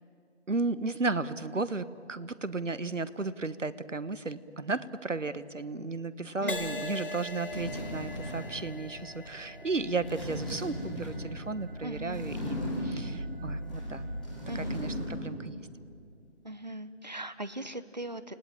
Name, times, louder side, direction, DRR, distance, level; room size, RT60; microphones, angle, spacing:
voice 1, 0.5-14.1 14.7-15.6, right 3 dB, 90° right, 14 dB, 1.4 m, -34 dB
voice 2, 6.4-6.8 11.8-12.3 14.5-14.9 16.4-18.3, right 1 dB, 35° right, 12 dB, 0.9 m, -39 dB
Crash cymbal, 6.5-14.1 14.8-15.1, left 1 dB, 45° left, 1.3 m, -42 dB
sound 1, 7.0-7.1 7.5-8.6 9.9-11.3 12.1-13.2 13.6-15.3 15.6-15.7, left 1 dB, 5° left, 2.6 m, -37 dB
sound 2, 8.9-15.2, equal, 15° right, 2.9 m, -42 dB
29.5 x 20.0 x 8.9 m, 2.3 s
figure-of-eight pair, 175°, 36 cm